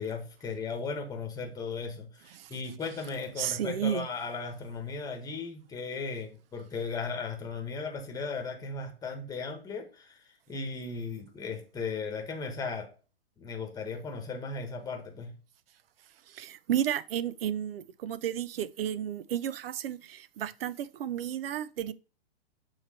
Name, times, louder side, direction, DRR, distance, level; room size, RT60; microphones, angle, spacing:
voice 1, 0.0-12.9 13.4-15.4, left 4 dB, 10° left, 1.2 m, -36 dB
voice 2, 3.4-4.1 16.3-21.9, right 10 dB, 65° right, 0.5 m, -32 dB
7.1 x 3.2 x 4.2 m
hypercardioid pair, 120°, 32 cm